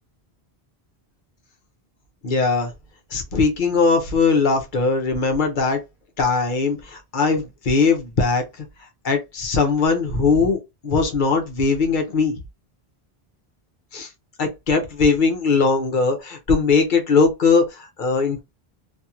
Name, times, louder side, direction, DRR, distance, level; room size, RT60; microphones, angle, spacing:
voice 1, 2.2-2.7 3.1-5.8 6.2-8.6 9.0-12.3 13.9-14.1 14.4-18.4, left 4 dB, 55° left, 0.8 m, -20 dB
2.8 x 2.5 x 2.4 m
omnidirectional pair, 1.0 m